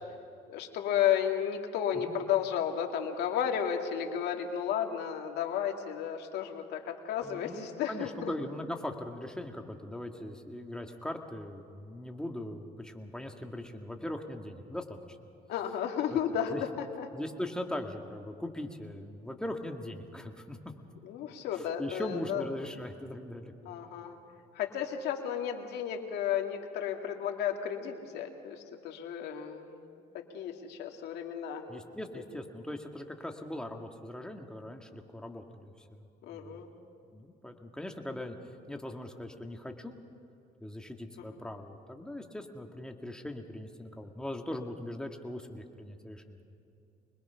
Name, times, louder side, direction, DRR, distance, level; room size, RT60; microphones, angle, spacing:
voice 1, 0.5-8.3 15.5-17.1 21.0-22.4 23.6-24.2 24.5-31.9 36.2-36.7 41.2-41.3, left 9 dB, 80° left, 3 dB, 2.3 m, -33 dB
voice 2, 7.2-15.0 16.1-16.2 16.5-16.6 17.1-20.6 21.5-23.9 31.7-36.6 37.1-38.4 38.7-40.0 40.6-46.4, left 1 dB, 5° left, 3 dB, 1.9 m, -40 dB
25.5 x 20.5 x 5.7 m, 2.6 s
cardioid pair, 110°, 17 cm